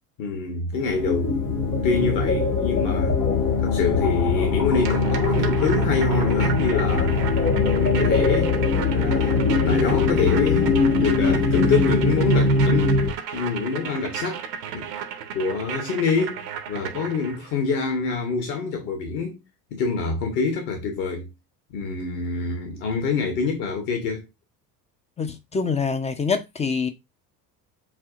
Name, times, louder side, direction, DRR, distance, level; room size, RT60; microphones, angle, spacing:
voice 1, 0.2-1.3 1.8-3.2 3.6-7.1 7.7-8.5 8.9-13.0 13.3-14.4 14.7-14.9 15.3-16.4 16.7-19.4 19.7-21.3 21.7-24.2, left 5 dB, 55° left, 1.3 m, -26 dB
sound 1, 0.7-13.1, left 3 dB, 85° left, 2.2 m, -21 dB
sound 2, 4.8-17.6, right 8 dB, 75° right, 0.9 m, -34 dB
voice 2, 25.2-26.9, left 5 dB, 15° left, 0.4 m, -25 dB
7.4 x 2.7 x 2.5 m
figure-of-eight pair, 65°, 49 cm